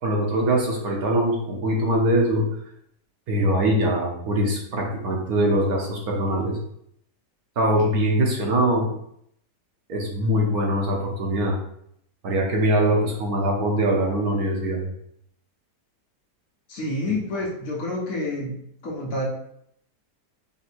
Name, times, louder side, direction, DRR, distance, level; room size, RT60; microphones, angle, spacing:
voice 1, 0.0-2.4 3.3-6.6 7.6-8.9 9.9-11.6 12.2-14.9, right 1 dB, 65° right, 0 dB, 1.1 m, -22 dB
voice 2, 16.7-18.6 18.8-19.3, left 1 dB, 60° left, -2 dB, 1.2 m, -28 dB
3.5 x 2.6 x 4.2 m, 0.72 s
omnidirectional pair, 1.8 m